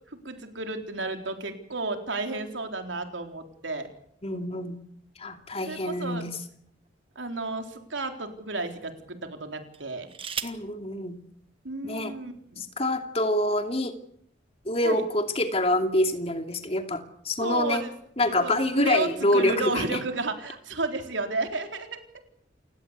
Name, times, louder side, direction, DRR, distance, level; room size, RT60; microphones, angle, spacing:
voice 1, 0.0-3.9 5.7-6.2 7.2-10.1 11.6-12.6 14.8-15.0 17.4-17.9 18.4-22.2, right 3 dB, 90° right, 5 dB, 3.9 m, -32 dB
voice 2, 4.2-4.8 5.2-6.4 10.4-11.2 11.8-12.1 12.6-13.9 14.6-17.8 18.2-20.0, left 1 dB, 35° left, 6 dB, 2.6 m, -26 dB
sound 1, 5.9-7.2 7.9-8.0 9.7-10.7 11.9-12.0 12.3-12.7, right 8 dB, 30° right, 1.3 m, -39 dB
29.0 x 17.0 x 8.3 m, 0.68 s
head